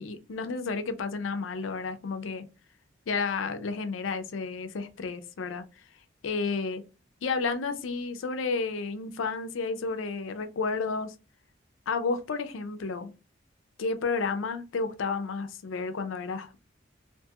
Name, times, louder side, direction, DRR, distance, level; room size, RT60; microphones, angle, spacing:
voice 1, 0.0-2.4 3.1-5.6 6.2-6.8 7.2-11.1 11.9-13.1 13.8-16.6, left 4 dB, 85° left, 0.4 m, -31 dB
2.5 x 2.3 x 2.7 m
head